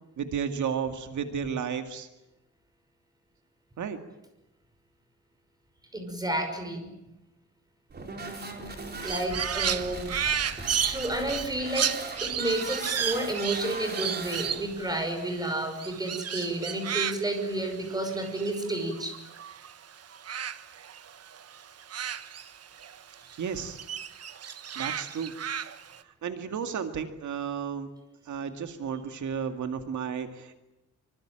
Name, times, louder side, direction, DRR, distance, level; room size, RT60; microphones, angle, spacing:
voice 1, 0.2-2.1 3.8-4.0 23.4-23.8 24.8-25.3 26.2-27.9 28.3-30.5, right 7 dB, 85° right, 7 dB, 2.3 m, -33 dB
voice 2, 5.9-6.9 9.0-11.9 12.2-19.1, right 1 dB, 15° right, 5 dB, 5.9 m, -31 dB
sound 1, 7.9-14.9, right 3 dB, 35° right, 4.6 m, -39 dB
Crow, 9.0-19.7 20.0-23.0 23.3-26.0, right 8 dB, 55° right, 1.3 m, -33 dB
25.5 x 25.5 x 9.1 m, 0.92 s
wide cardioid pair, 175°, 29 cm